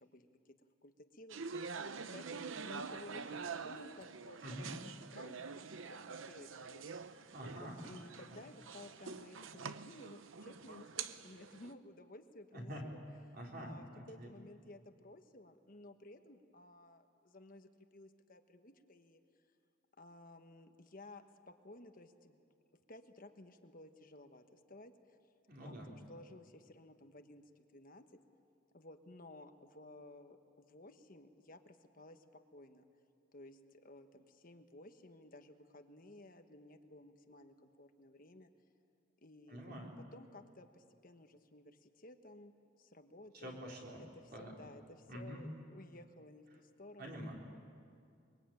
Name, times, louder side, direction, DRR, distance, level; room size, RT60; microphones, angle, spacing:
sound 1, 1.3-11.7, right 5 dB, 70° right, 0.8 m, -46 dB
voice 1, 2.1-6.9 7.5-13.0 13.5-17.0 17.3-19.2 20.0-21.2 21.6-22.1 22.9-24.4 24.7-24.9 25.6-27.4 27.7-28.0 28.7-30.4 30.7-32.2 32.5-32.8 33.3-33.5 33.8-38.5 39.2-39.6 40.1-40.7 41.0-41.6 42.0-42.5 42.9-43.6 44.0-44.1 44.4-44.8 45.1-46.4 46.8-47.2, left 1 dB, 40° left, 7 dB, 1.3 m, -55 dB
voice 2, 7.3-7.8 12.5-12.8 13.3-14.3 25.5-25.9 39.5-39.9 43.3-44.0 44.3-44.5 45.1-45.5 47.0-47.3, equal, 45° right, -1 dB, 4.2 m, -46 dB
23.5 x 23.5 x 9.0 m, 2.4 s
head